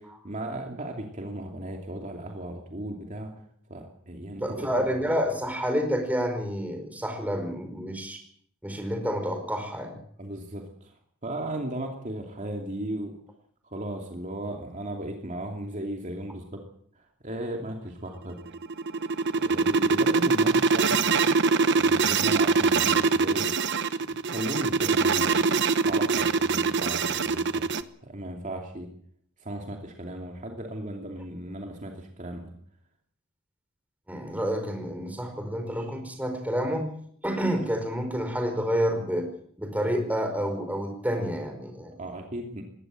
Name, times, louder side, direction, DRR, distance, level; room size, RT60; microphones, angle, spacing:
voice 1, 0.0-3.3 3.7-4.9 10.2-10.9 11.2-13.1 13.6-16.6 17.0-18.4 19.3-21.1 21.7-23.4 24.1-25.4 25.8-27.6 28.0-28.9 29.4-32.5 42.0-42.6, right 1 dB, 35° right, 2 dB, 2.7 m, -36 dB
voice 2, 4.4-8.2 8.6-10.0 34.1-36.9 37.2-39.3 39.6-42.0, equal, 5° right, 4 dB, 5.0 m, -29 dB
sound 1, 18.4-27.8, right 4 dB, 60° right, 1.1 m, -23 dB
21.0 x 17.0 x 7.7 m, 0.62 s
head